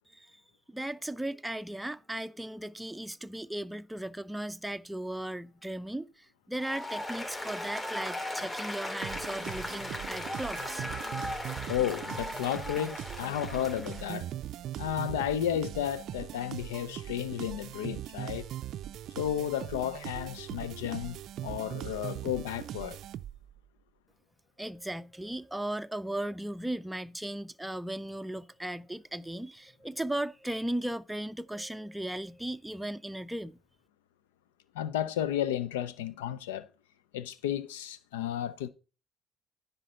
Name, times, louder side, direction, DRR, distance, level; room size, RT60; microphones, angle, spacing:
voice 1, 0.1-0.4 0.7-11.0 24.6-33.6, right 1 dB, 5° right, 0.5 m, -37 dB
Applause, 6.6-14.1, left 1 dB, 30° left, 3.1 m, -38 dB
sound 1, 9.0-23.6, right 12 dB, 65° right, 0.4 m, -40 dB
voice 2, 11.7-14.3 14.8-18.5 19.2-23.0 34.7-36.7 37.1-38.7, left 10 dB, 85° left, 0.5 m, -33 dB
10.0 x 3.9 x 6.4 m
hypercardioid pair, 55°, 0 cm